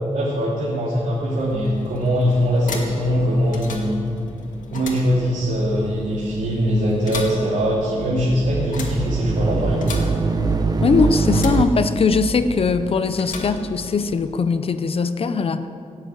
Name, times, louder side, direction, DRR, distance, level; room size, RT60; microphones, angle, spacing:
voice 1, 0.1-4.0 4.7-9.9, equal, 80° right, -6 dB, 2.8 m, -21 dB
sound 1, 1.1-14.4, left 3 dB, 80° left, 2.1 m, -36 dB
sound 2, 8.0-11.6, right 4 dB, 30° right, 0.9 m, -22 dB
voice 2, 10.8-15.7, left 4 dB, 45° left, 11 dB, 0.7 m, -20 dB
17.0 x 8.0 x 9.0 m, 2.6 s
wide cardioid pair, 155°, 13 cm